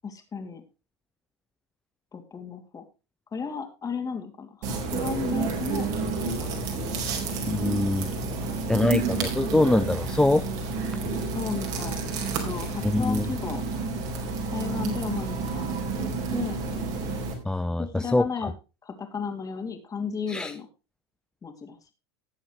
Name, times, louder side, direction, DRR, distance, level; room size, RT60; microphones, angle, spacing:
voice 1, 0.0-0.6 2.1-2.8 3.3-7.0 8.2-8.9 11.3-12.0 12.4-13.6 14.5-16.6 17.8-18.5 18.8-20.7 21.4-21.9, left 5 dB, 25° left, 5 dB, 2.7 m, -34 dB
sound 1, 4.6-17.3, right 4 dB, 55° right, 4.2 m, -30 dB
voice 2, 7.4-8.1 8.7-10.4 12.8-13.2 17.4-18.2 20.3-20.5, left 2 dB, 5° left, 11 dB, 0.4 m, -23 dB
18.0 x 7.1 x 3.2 m, 0.29 s
hypercardioid pair, 105°, 14 cm